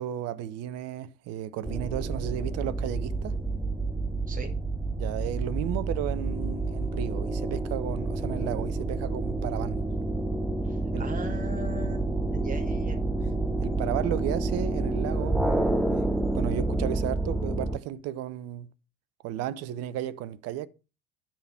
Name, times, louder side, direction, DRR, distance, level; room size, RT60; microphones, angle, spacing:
voice 1, 0.0-3.4 5.0-9.8 10.9-11.1 13.6-15.5 15.9-18.7 19.2-20.7, right 11 dB, 45° right, 0.7 m, -34 dB
sound 1, 1.6-17.8, right 2 dB, ahead, 0.6 m, -29 dB
voice 2, 10.6-13.0, right 2 dB, 20° right, 2.5 m, -39 dB
10.0 x 5.1 x 5.7 m
figure-of-eight pair, 70°, 37 cm